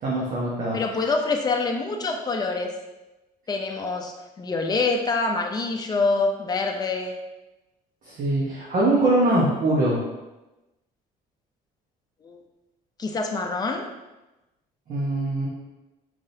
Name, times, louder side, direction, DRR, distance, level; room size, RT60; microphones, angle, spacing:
voice 1, 0.0-1.1 8.0-10.0 14.9-15.5, right 1 dB, 50° right, -6 dB, 1.1 m, -23 dB
voice 2, 0.7-2.7 3.5-7.2 12.2-12.4 13.0-13.8, left 3 dB, 25° left, 3 dB, 0.6 m, -26 dB
4.8 x 3.7 x 2.7 m, 1.0 s
cardioid pair, 110°, 17 cm